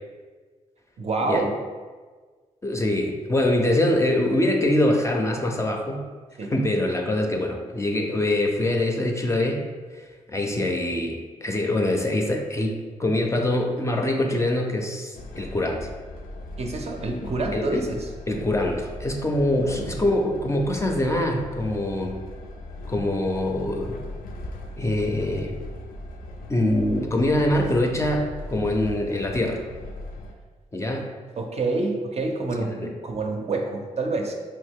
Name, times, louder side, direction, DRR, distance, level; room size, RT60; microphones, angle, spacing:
voice 1, 1.0-1.6 6.4-6.5 16.6-18.1 19.7-19.9 30.9-31.1 31.4-34.3, right 3 dB, 50° right, 3 dB, 0.5 m, -27 dB
voice 2, 2.6-6.1 6.4-9.6 9.9-15.9 17.5-17.8 18.3-22.2 22.9-24.0 24.8-25.6 26.5-29.6 30.7-31.1 32.5-32.7, left 1 dB, 20° left, 2 dB, 0.4 m, -24 dB
Train, 15.1-30.3, left 2 dB, 85° left, 0.4 m, -38 dB
2.9 x 2.7 x 3.5 m, 1.4 s
cardioid pair, 70°, 14 cm